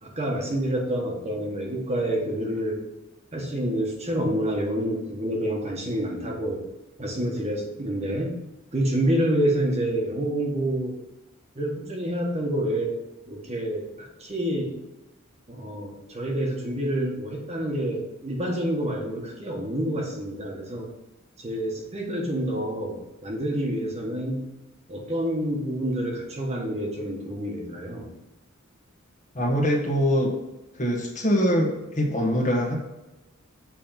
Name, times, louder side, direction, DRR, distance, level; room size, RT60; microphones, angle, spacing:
voice 1, 0.0-2.8 3.3-6.6 7.0-8.3 8.7-10.9 11.5-12.9 13.3-14.7 15.5-20.9 21.4-24.5 24.9-28.1, right 1 dB, 30° right, 0 dB, 1.4 m, -28 dB
voice 2, 29.3-30.3 30.8-32.8, equal, 35° left, 0 dB, 1.4 m, -23 dB
7.5 x 4.1 x 5.8 m, 0.99 s
head